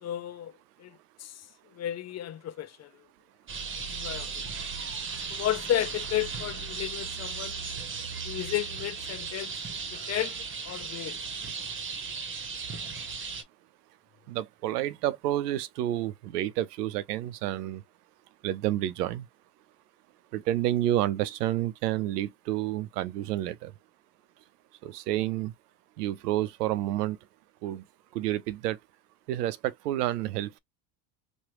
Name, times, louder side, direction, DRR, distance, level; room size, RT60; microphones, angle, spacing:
voice 1, 0.0-0.5 0.8-1.4 1.7-2.9 3.9-4.3 5.3-7.6 8.2-9.6 9.9-11.2, left 12 dB, 35° left, 0.6 m, -33 dB
sound 1, 3.5-13.4, right 5 dB, 25° right, 0.9 m, -36 dB
voice 2, 14.3-17.8 18.4-19.3 20.3-23.7 24.8-25.5 26.0-27.2 27.6-27.8 28.1-28.8 29.3-30.6, right 13 dB, 90° right, 0.6 m, -29 dB
3.1 x 2.2 x 3.0 m
hypercardioid pair, 80°, 46 cm